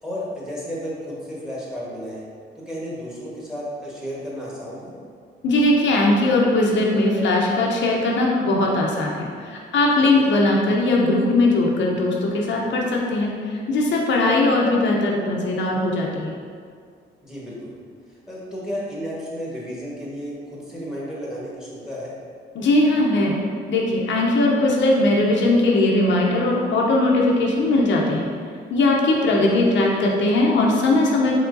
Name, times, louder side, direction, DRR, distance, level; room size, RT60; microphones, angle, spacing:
voice 1, 0.0-2.2 2.5-4.9 10.0-10.3 17.2-17.8 18.3-22.1 29.5-29.9, equal, 5° right, -6 dB, 1.3 m, -33 dB
voice 2, 5.4-16.3 22.6-23.3 23.7-28.3 28.7-31.4, left 2 dB, 70° left, -2 dB, 0.6 m, -19 dB
4.5 x 3.6 x 2.6 m, 2.2 s
cardioid pair, 90°, 20 cm